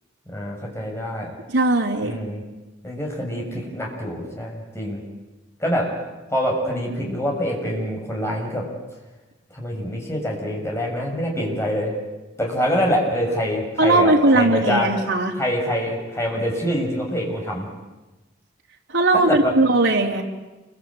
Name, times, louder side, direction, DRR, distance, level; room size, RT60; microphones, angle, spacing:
voice 1, 0.3-1.3 2.0-2.4 2.8-5.0 5.6-5.9 6.3-8.7 9.5-11.9 12.4-14.9 15.4-17.7 19.1-19.5, equal, 15° left, -1 dB, 7.1 m, -25 dB
voice 2, 1.5-2.2 13.8-15.3 18.9-20.2, right 2 dB, 80° right, -1 dB, 3.6 m, -18 dB
28.5 x 23.0 x 8.9 m, 1.1 s
head